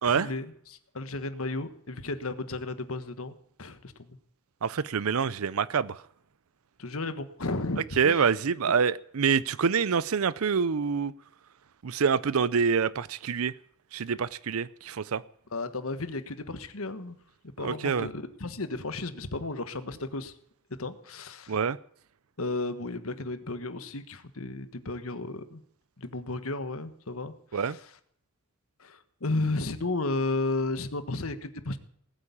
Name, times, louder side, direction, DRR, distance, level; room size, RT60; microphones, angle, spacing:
voice 1, 0.1-4.2 6.8-8.3 8.7-8.8 15.5-17.2 17.4-20.3 20.8-21.6 22.4-25.6 26.0-27.9 28.8-31.8, left 2 dB, 70° left, 1.5 m, -34 dB
voice 2, 4.6-5.9 8.0-11.1 11.8-13.5 13.9-15.2 17.6-18.1 21.5-21.8 27.5-27.8, right 6 dB, 75° right, 0.6 m, -26 dB
19.0 x 8.8 x 8.6 m
head